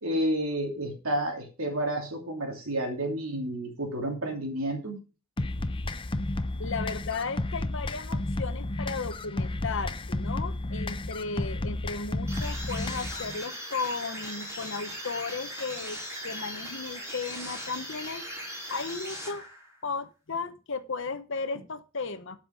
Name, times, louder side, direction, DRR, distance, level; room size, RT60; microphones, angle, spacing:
voice 1, 0.0-5.0, right 1 dB, 85° right, 3 dB, 2.8 m, -30 dB
sound 1, 5.4-13.4, left 2 dB, 25° left, 0.6 m, -32 dB
voice 2, 6.6-18.2 18.7-19.5 19.8-22.4, left 4 dB, 65° left, 9 dB, 0.9 m, -35 dB
sound 2, 12.3-19.8, equal, 15° right, 5.2 m, -39 dB
12.5 x 6.0 x 5.2 m, 0.33 s
head